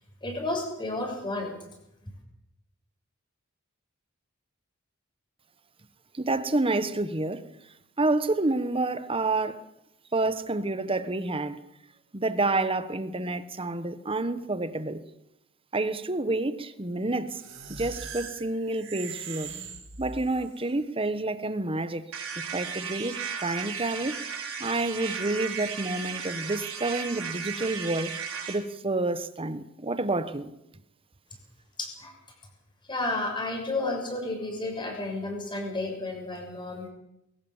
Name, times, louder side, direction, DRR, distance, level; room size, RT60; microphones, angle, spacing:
voice 1, 0.2-1.5 31.8-32.1 32.9-36.9, left 2 dB, 20° left, 6.6 m, -32 dB
voice 2, 6.1-7.5 8.0-9.6 10.1-11.6 12.1-15.0 15.7-17.4 17.8-19.6 20.0-24.3 24.6-28.2 28.5-30.5, right 2 dB, 25° right, 1.3 m, -29 dB
sound 1, 17.3-20.5, right 5 dB, 65° right, 6.9 m, -41 dB
sound 2, 22.1-28.6, right 6 dB, 80° right, 4.6 m, -35 dB
21.5 x 18.0 x 7.4 m
head